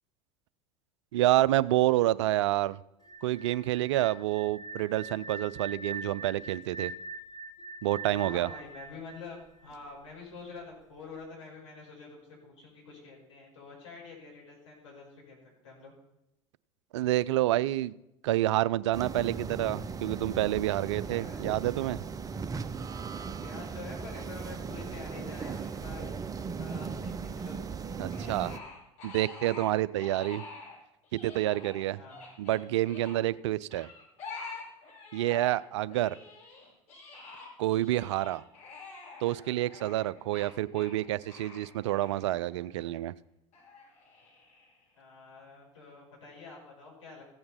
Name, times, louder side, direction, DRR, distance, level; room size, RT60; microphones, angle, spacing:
voice 1, 1.1-2.8 3.2-6.9 7.8-8.5 16.9-17.9 18.2-22.0 28.0-28.5 29.0-30.4 31.1-32.0 32.4-33.9 35.1-36.2 37.6-38.4 39.2-43.1, right 15 dB, 70° right, 19 dB, 0.4 m, -28 dB
sound 1, 3.0-9.9, right 3 dB, 25° left, 3.0 m, -43 dB
voice 2, 8.2-15.9 21.1-21.4 23.4-26.1 26.4-27.6 28.2-28.7 31.9-32.2 35.2-35.4 37.6-37.8 39.8-40.0 44.9-47.2, left 4 dB, 75° left, -3 dB, 5.1 m, -47 dB
sound 2, 18.9-28.6, right 5 dB, 20° right, 0.7 m, -37 dB
sound 3, 28.1-30.8 31.0-33.1 33.7-35.6 35.9-42.9 43.5-44.8, left 4 dB, 50° left, 5.6 m, -47 dB
15.5 x 8.6 x 4.2 m, 0.89 s
figure-of-eight pair, 70°, 16 cm